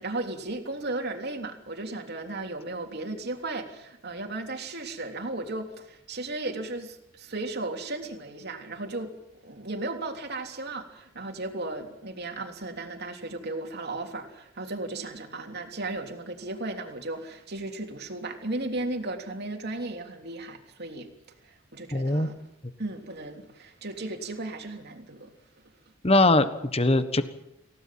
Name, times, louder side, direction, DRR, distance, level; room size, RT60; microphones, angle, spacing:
voice 1, 0.0-9.1 9.4-21.1 21.5-22.3 22.8-25.3, right 2 dB, 50° right, 4 dB, 3.4 m, -35 dB
voice 2, 21.9-22.3 26.0-27.2, left 2 dB, 30° left, 11 dB, 1.4 m, -21 dB
28.0 x 17.0 x 7.7 m, 0.82 s
head